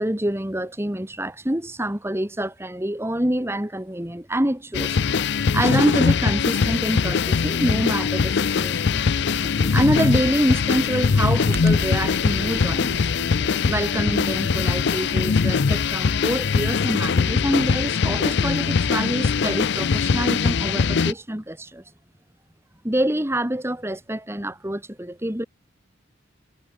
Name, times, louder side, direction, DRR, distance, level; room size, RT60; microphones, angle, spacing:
voice 1, 0.0-5.0 5.5-8.8 9.7-13.1 13.6-21.8 22.8-25.5, right 1 dB, 10° right, 1.7 m, -26 dB
sound 1, 4.7-21.1, left 5 dB, 60° left, 0.5 m, -22 dB
sound 2, 6.0-14.5, right 2 dB, 65° right, 4.8 m, -47 dB
Computer keyboard, 9.3-16.2, right 1 dB, 50° right, 5.6 m, -38 dB
head